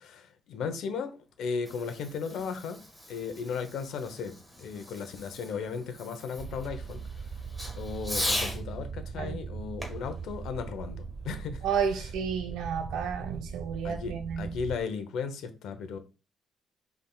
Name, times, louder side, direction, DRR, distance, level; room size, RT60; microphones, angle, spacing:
voice 1, 0.0-2.8 3.1-7.0 7.8-11.6 13.8-16.0, left 5 dB, 80° left, 0.8 m, -36 dB
Fireworks, 1.4-8.6 9.8-11.4, left 1 dB, ahead, 1.5 m, -39 dB
sound 1, 6.4-14.8, right 5 dB, 50° right, 0.4 m, -40 dB
voice 2, 11.6-14.5, right 7 dB, 85° right, 0.9 m, -31 dB
5.5 x 3.5 x 2.3 m
cardioid pair, 90°, 0 cm